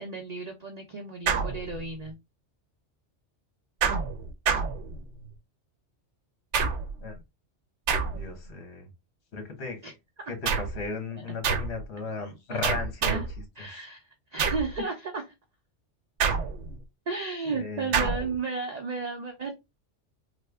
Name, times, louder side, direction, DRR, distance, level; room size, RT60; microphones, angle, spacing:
voice 1, 0.0-2.2 9.8-9.9 10.2-10.3 11.2-11.3 12.5-12.6 13.0-13.2 13.6-15.2 17.1-19.5, right 4 dB, 50° right, 3 dB, 0.5 m, -33 dB
sound 1, 1.3-2.1 3.8-5.3 6.5-7.1 7.9-8.5 10.4-10.9 11.4-11.8 12.6-13.4 14.4-14.8 16.2-16.8 17.9-18.4, right 6 dB, 75° right, 0.9 m, -28 dB
voice 2, 8.1-8.9 9.3-9.8 10.3-13.2 13.7-13.8 17.5-18.0, left 4 dB, 65° left, 5 dB, 1.3 m, -36 dB
3.3 x 2.1 x 3.3 m, 0.22 s
omnidirectional pair, 1.2 m